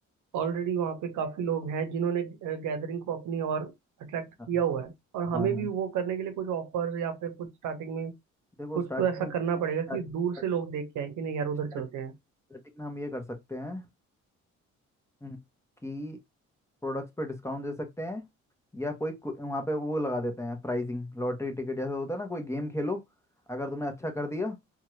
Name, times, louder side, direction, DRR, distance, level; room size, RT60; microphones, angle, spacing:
voice 1, 0.3-3.7 4.0-8.1 8.7-12.1, right 7 dB, 80° right, 0.8 m, -31 dB
voice 2, 5.3-5.7 8.6-9.3 9.9-10.0 12.5-13.8 15.2-15.4 15.8-16.2 16.8-18.2 18.7-23.0 23.5-24.6, left 1 dB, 10° left, 0.8 m, -33 dB
2.7 x 2.3 x 3.1 m
cardioid pair, 90°, 30 cm